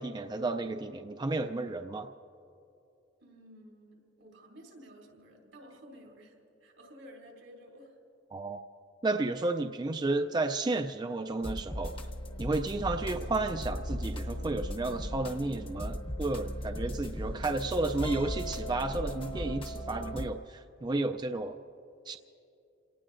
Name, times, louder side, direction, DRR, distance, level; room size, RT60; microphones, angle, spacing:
voice 1, 0.0-2.1 8.3-8.6 9.0-12.0 12.4-21.6 22.1-22.2, right 2 dB, 20° right, 7 dB, 0.3 m, -32 dB
voice 2, 3.2-6.3 6.6-8.0, equal, 85° right, 0 dB, 3.4 m, -53 dB
sound 1, 11.4-20.3, equal, 30° left, 0.8 m, -37 dB
28.0 x 18.5 x 2.5 m, 2.8 s
head